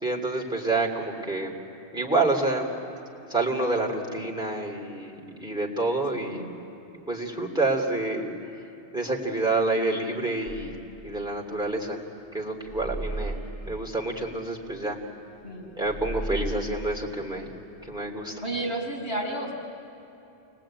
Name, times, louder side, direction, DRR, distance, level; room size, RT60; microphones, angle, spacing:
voice 1, 0.0-1.6 1.9-2.7 3.3-6.4 7.1-8.3 8.9-10.7 11.0-12.0 12.3-13.4 13.6-15.0 15.8-17.5 17.9-18.3, right 2 dB, 5° right, -1 dB, 2.9 m, -28 dB
voice 2, 6.1-6.5 15.4-15.8 18.4-19.5, right 1 dB, 70° left, 1 dB, 4.9 m, -32 dB
sound 1, 10.5-18.0, right 2 dB, 30° left, 2.5 m, -37 dB
28.5 x 20.5 x 8.9 m, 2.9 s
omnidirectional pair, 1.1 m